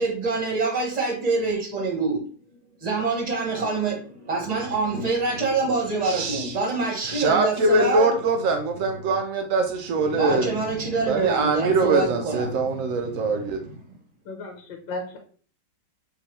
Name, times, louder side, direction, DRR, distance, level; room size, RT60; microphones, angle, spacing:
voice 1, 0.0-2.2 2.8-8.1 10.1-12.8, right 3 dB, 25° right, 1 dB, 1.0 m, -25 dB
voice 2, 6.0-6.6 7.0-10.5 11.0-13.6, right 3 dB, 90° right, 4 dB, 0.7 m, -23 dB
voice 3, 14.2-15.2, left 2 dB, 85° left, 3 dB, 1.6 m, -34 dB
4.7 x 2.9 x 3.1 m, 0.43 s
omnidirectional pair, 2.0 m